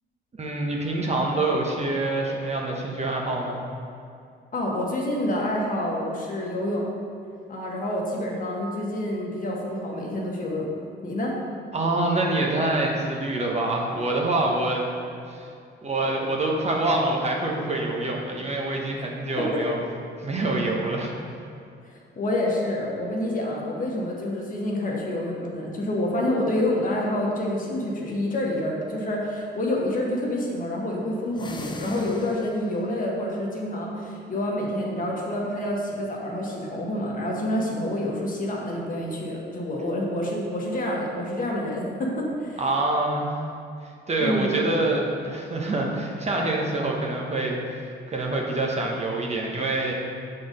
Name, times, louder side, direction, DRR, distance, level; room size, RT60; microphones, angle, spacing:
voice 1, 0.4-3.6 11.7-14.9 15.3-15.5 15.8-19.8 20.2-21.1 42.6-43.3 44.1-47.6 48.1-49.9, right 2 dB, 35° right, -1 dB, 1.0 m, -26 dB
voice 2, 4.5-6.8 7.5-10.7 11.0-11.3 19.4-19.6 22.2-42.6 44.2-44.5, left 1 dB, 45° left, -2 dB, 1.3 m, -28 dB
sound 1, 31.3-32.9, left 3 dB, 25° left, 0.6 m, -39 dB
6.0 x 3.9 x 5.1 m, 2.5 s
cardioid pair, 90°, 20 cm